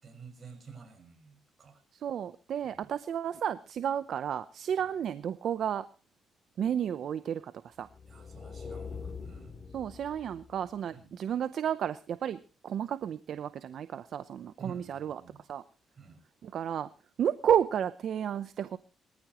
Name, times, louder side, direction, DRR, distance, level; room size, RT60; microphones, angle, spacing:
voice 1, 0.0-1.8 2.6-2.9 4.8-4.9 8.1-9.5 10.9-11.1 14.6-15.4 15.9-16.2, right 6 dB, 40° right, 6 dB, 6.0 m, -51 dB
voice 2, 1.9-5.9 6.6-7.9 9.7-15.2 15.5-15.6 16.4-16.9 17.2-18.8, right 9 dB, 65° right, 13 dB, 0.7 m, -32 dB
sound 1, 7.8-10.8, left 5 dB, 35° left, 3.4 m, -44 dB
22.5 x 14.0 x 3.0 m, 0.34 s
cardioid pair, 90°, 0 cm